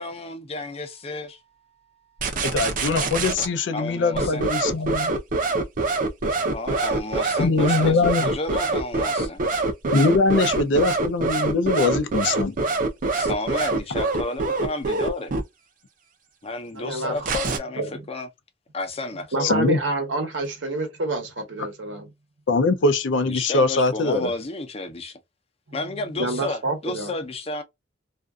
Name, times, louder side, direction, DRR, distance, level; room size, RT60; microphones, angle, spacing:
voice 1, 0.0-1.4 3.7-4.4 6.5-9.4 13.1-15.3 16.4-17.8 18.1-18.3 18.7-19.6 23.3-25.2 25.7-27.6, left 2 dB, 35° left, 0.6 m, -31 dB
sound 1, 2.2-3.5 4.1-15.4 17.2-17.6, right 3 dB, 50° right, 0.6 m, -24 dB
voice 2, 2.4-5.1 7.4-8.3 9.9-12.5 19.4-19.8 22.5-24.3, left 3 dB, 90° left, 0.5 m, -22 dB
voice 3, 16.8-17.3 17.8-18.1 19.3-22.1 25.7-25.8 26.1-27.1, right 2 dB, 90° right, 1.0 m, -28 dB
2.5 x 2.3 x 2.2 m
head